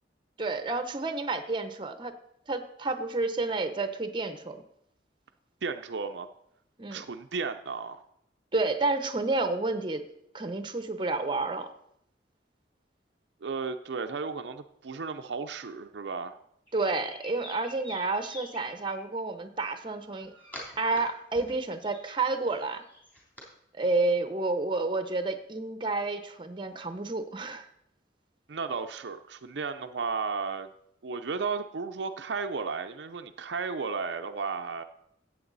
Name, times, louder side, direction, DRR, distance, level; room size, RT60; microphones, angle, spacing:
voice 1, 0.4-2.1 2.5-4.6 6.8-7.0 8.5-10.0 10.3-11.7 16.7-20.3 20.8-22.8 23.7-27.6, right 3 dB, 25° right, 9 dB, 0.8 m, -30 dB
voice 2, 5.6-6.3 6.9-8.0 13.4-16.4 28.5-30.7 31.0-34.8, right 5 dB, 75° right, 7 dB, 0.6 m, -34 dB
sound 1, 16.7-19.0 19.8-21.0 21.3-23.5, left 1 dB, 10° left, 3.2 m, -46 dB
14.5 x 8.3 x 4.0 m, 0.75 s
head